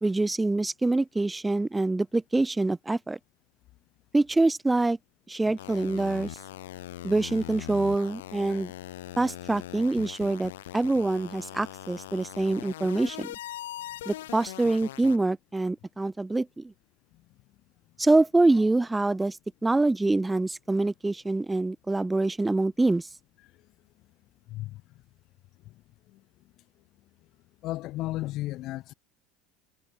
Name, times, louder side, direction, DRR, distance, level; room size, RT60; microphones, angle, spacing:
voice 1, 0.0-3.2 4.1-5.0 5.3-6.4 7.0-8.7 9.2-13.3 14.1-16.7 18.0-19.4 19.6-23.1, right 2 dB, 10° right, 0.7 m, -25 dB
sound 1, 5.6-15.2, left 14 dB, 85° left, 7.3 m, -41 dB
voice 2, 24.5-24.8 25.6-26.2 27.6-28.9, left 17 dB, 55° left, 2.1 m, -35 dB
hypercardioid pair, 90°, 0 cm